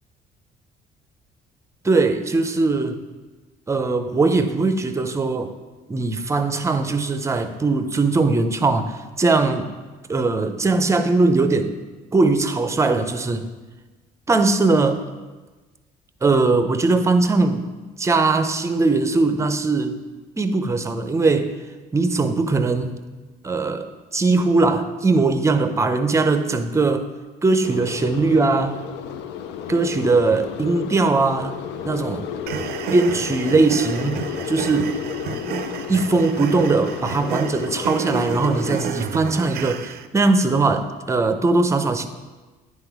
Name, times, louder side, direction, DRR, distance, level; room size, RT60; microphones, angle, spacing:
voice 1, 1.8-3.0 3.7-5.5 5.9-9.7 10.1-11.7 12.1-13.5 14.3-15.0 16.2-17.6 18.0-20.0 20.4-21.5 21.9-23.0 23.4-27.1 27.4-28.8 29.7-31.6 31.8-32.3 32.9-34.9 35.9-42.1, right 3 dB, 15° right, 9 dB, 0.5 m, -20 dB
sound 1, 27.6-38.9, left 8 dB, 85° left, 0.5 m, -32 dB
sound 2, 32.5-40.1, right 8 dB, 70° right, 0.4 m, -31 dB
9.6 x 3.8 x 4.6 m, 1.2 s
cardioid pair, 110°, 17 cm